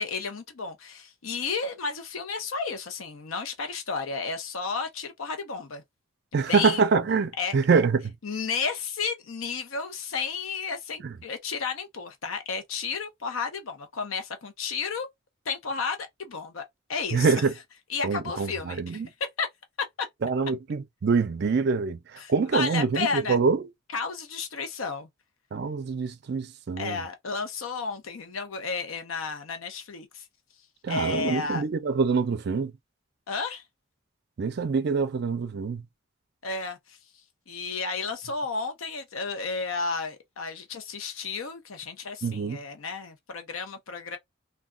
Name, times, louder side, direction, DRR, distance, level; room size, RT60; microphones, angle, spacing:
voice 1, 0.0-5.8 6.3-6.8 7.4-7.6 8.2-15.1 15.4-16.6 16.9-17.5 17.9-19.0 19.4-19.5 20.0-20.1 22.2-23.4 23.9-25.1 26.8-30.3 30.9-31.7 33.3-33.6 36.4-37.0 37.5-44.2, left 5 dB, 85° left, 0.7 m, -32 dB
voice 2, 6.3-8.1 11.0-11.1 17.1-17.5 18.0-19.1 20.2-23.7 25.5-27.0 30.8-32.7 34.4-35.8 42.2-42.6, right 5 dB, 55° right, 0.4 m, -25 dB
2.2 x 2.2 x 3.6 m
head